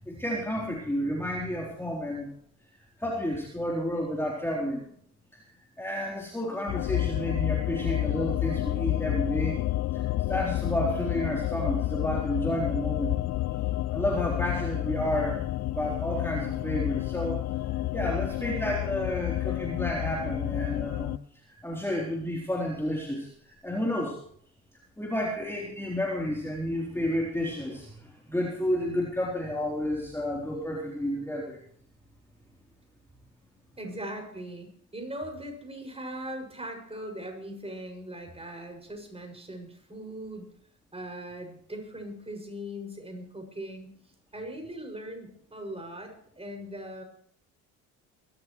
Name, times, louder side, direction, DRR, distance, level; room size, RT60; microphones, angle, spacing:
voice 1, 0.0-2.3 3.0-4.8 5.3-5.4 5.8-9.6 9.9-13.2 13.5-13.6 13.9-15.4 15.7-21.2 21.6-24.2 25.0-31.6, equal, 5° left, -2 dB, 3.9 m, -31 dB
sound 1, 6.7-21.2, left 15 dB, 40° left, 0.5 m, -30 dB
voice 2, 33.8-40.4 40.9-43.9 44.3-47.0, right 1 dB, 15° right, 3 dB, 6.8 m, -40 dB
23.0 x 14.0 x 3.3 m, 0.63 s
hypercardioid pair, 75°, 42 cm